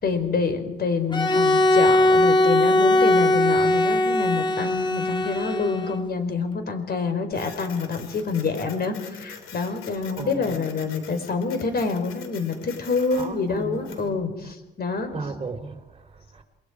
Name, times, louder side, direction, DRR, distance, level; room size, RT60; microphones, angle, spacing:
voice 1, 0.0-15.1, left 4 dB, 50° left, 4.4 m, -27 dB
Bowed string instrument, 1.1-6.1, left 1 dB, 25° left, 1.6 m, -20 dB
Printer, 7.3-14.1, left 7 dB, 80° left, 3.3 m, -44 dB
voice 2, 13.1-14.2 15.1-16.4, right 4 dB, 30° right, 3.8 m, -36 dB
29.0 x 21.5 x 4.9 m
cardioid pair, 90°, 20 cm